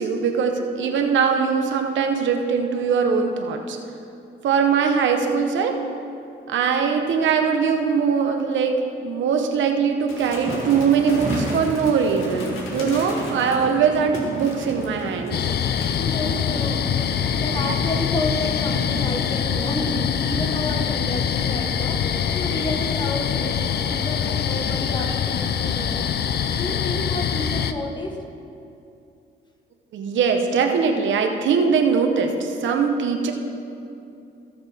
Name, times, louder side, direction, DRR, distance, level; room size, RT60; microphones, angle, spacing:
voice 1, 0.0-3.8 4.4-5.8 6.5-15.5 29.9-33.3, right 6 dB, 70° right, 4 dB, 1.0 m, -21 dB
sound 1, 10.1-16.8 17.2-17.5 18.2-18.7 20.9-22.5 22.8-22.9, left 2 dB, 90° left, 1.9 m, -39 dB
sound 2, 10.2-18.4, right 2 dB, 35° right, 1.7 m, -33 dB
sound 3, 15.3-27.7, left 8 dB, 55° left, 0.6 m, -24 dB
voice 2, 15.7-16.9 17.4-22.0 22.3-26.1 26.6-28.2, left 1 dB, 20° left, 2 dB, 1.5 m, -30 dB
18.0 x 6.5 x 3.5 m, 2.7 s
cardioid pair, 90°, 20 cm